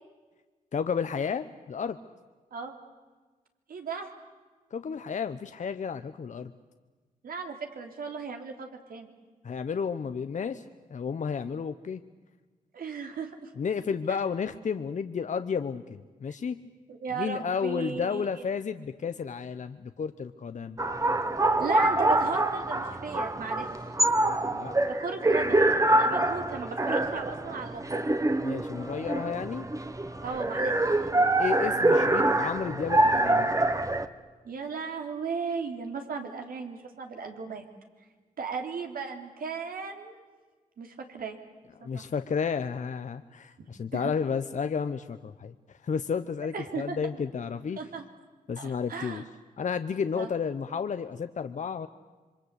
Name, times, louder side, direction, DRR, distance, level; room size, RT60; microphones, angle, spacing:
voice 1, 0.7-2.0 4.7-6.5 9.4-10.6 10.9-12.0 13.6-16.6 17.2-20.8 24.5-24.7 28.4-29.7 31.4-33.5 41.8-45.5 45.8-47.8 48.5-49.2 49.6-51.9, left 6 dB, 55° left, 10 dB, 1.0 m, -32 dB
voice 2, 3.7-4.1 7.2-9.1 12.7-13.5 16.9-18.4 21.6-23.7 24.9-28.1 30.2-30.7 34.4-37.6 38.4-40.2 40.8-41.4 41.8-42.1 43.9-44.1 46.5-47.0 47.7-48.0 48.6-49.2 50.2-50.3, right 5 dB, 80° right, 4 dB, 3.3 m, -36 dB
sound 1, 20.8-34.1, right 2 dB, 20° right, 1.5 m, -25 dB
27.0 x 23.0 x 8.3 m, 1.3 s
cardioid pair, 80°, 15 cm